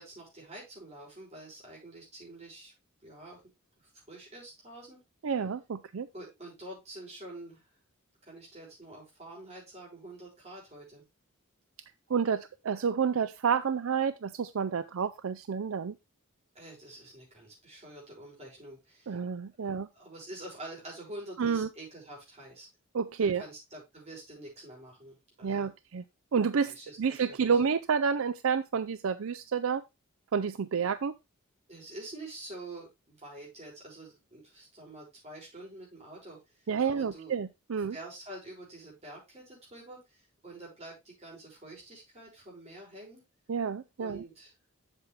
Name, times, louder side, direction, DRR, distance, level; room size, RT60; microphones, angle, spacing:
voice 1, 0.0-2.7 3.0-3.4 4.1-5.0 6.1-7.7 8.2-11.0 16.5-19.2 19.6-22.7 23.2-25.7 26.6-27.6 31.7-37.3 37.9-43.2 44.0-44.5, right 1 dB, 30° right, -3 dB, 5.6 m, -47 dB
voice 2, 5.2-6.1 12.1-16.0 19.1-19.9 21.4-21.7 22.9-23.4 25.4-26.0 26.3-29.8 30.3-31.1 36.7-38.0 43.5-44.2, right 6 dB, 70° right, 13 dB, 0.4 m, -29 dB
8.1 x 7.4 x 3.2 m, 0.23 s
head